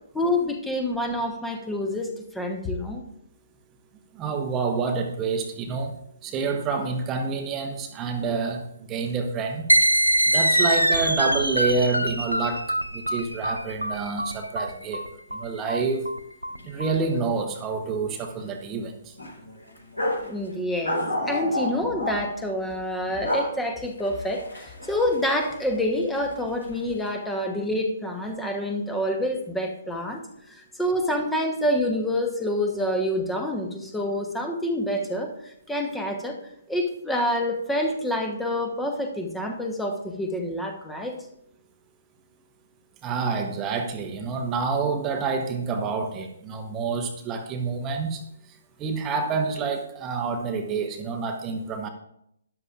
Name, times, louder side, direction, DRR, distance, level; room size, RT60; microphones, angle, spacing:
voice 1, 0.1-3.0 20.2-30.2 30.5-36.4 36.7-41.1, left 1 dB, 5° left, 3 dB, 1.1 m, -27 dB
voice 2, 4.1-5.9 6.2-9.7 10.3-16.1 16.7-19.1 43.0-48.2 48.5-51.9, right 4 dB, 20° right, 4 dB, 1.0 m, -28 dB
sound 1, 9.7-16.9, right 1 dB, 85° right, 0.6 m, -23 dB
sound 2, 16.5-16.7 17.0-17.1 17.5-18.2 18.5-18.6 19.2-20.3 20.8-22.2 23.0-23.5 23.9-25.8 26.1-26.9, left 1 dB, 75° left, 3.9 m, -30 dB
13.0 x 11.0 x 2.5 m, 0.75 s
figure-of-eight pair, 130°, 0 cm